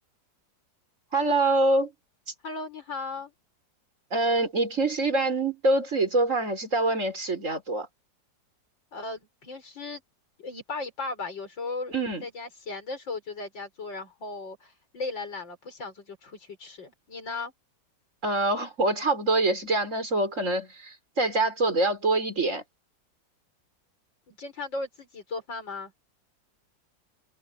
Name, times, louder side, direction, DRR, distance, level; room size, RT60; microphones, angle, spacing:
voice 1, 1.1-1.9 4.1-7.9 11.9-12.2 18.2-22.6, right 2 dB, 40° right, 5.1 m, -25 dB
voice 2, 2.4-3.3 8.9-10.0 10.4-11.9 12.2-17.5 24.3-25.9, left 3 dB, 80° left, 5.8 m, -36 dB
omnidirectional pair, 2.0 m